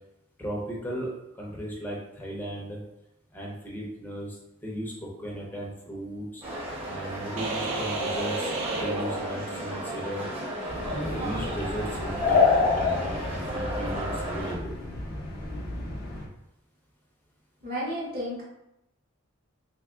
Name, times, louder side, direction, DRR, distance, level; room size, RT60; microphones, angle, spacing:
voice 1, 0.4-2.8 3.3-6.4 6.9-10.3 10.6-14.7, equal, 10° left, -4 dB, 0.8 m, -36 dB
sound 1, 6.4-14.5, right 1 dB, 25° right, 1.1 m, -35 dB
sound 2, 7.4-10.0, right 2 dB, 70° right, 0.6 m, -32 dB
sound 3, 10.7-16.3, left 4 dB, 45° left, 0.7 m, -28 dB
voice 2, 17.6-18.4, equal, 45° right, -7 dB, 1.5 m, -32 dB
3.4 x 3.4 x 2.4 m, 0.88 s
head